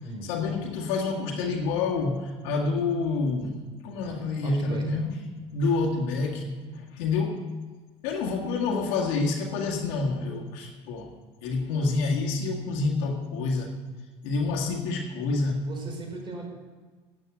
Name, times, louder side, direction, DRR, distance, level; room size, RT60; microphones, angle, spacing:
voice 1, 0.2-5.2 5.5-7.4 8.0-11.1 11.4-13.7 14.2-15.7, left 3 dB, 85° left, -1 dB, 1.9 m, -28 dB
voice 2, 4.4-5.0 15.6-16.5, right 3 dB, 35° right, 1 dB, 3.9 m, -38 dB
9.7 x 8.7 x 8.1 m, 1.4 s
supercardioid pair, 100°, 14 cm